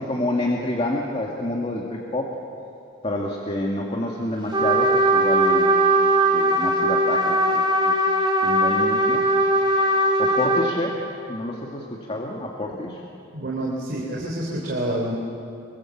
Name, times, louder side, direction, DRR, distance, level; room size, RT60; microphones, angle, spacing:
voice 1, 0.0-2.3 3.0-9.2 10.2-13.0, left 1 dB, 30° left, -1 dB, 2.1 m, -28 dB
Trumpet, 4.5-10.7, right 1 dB, 25° right, 3.2 m, -19 dB
voice 2, 13.3-15.2, right 1 dB, 50° right, -2 dB, 3.6 m, -27 dB
26.0 x 24.0 x 7.3 m, 2.6 s
head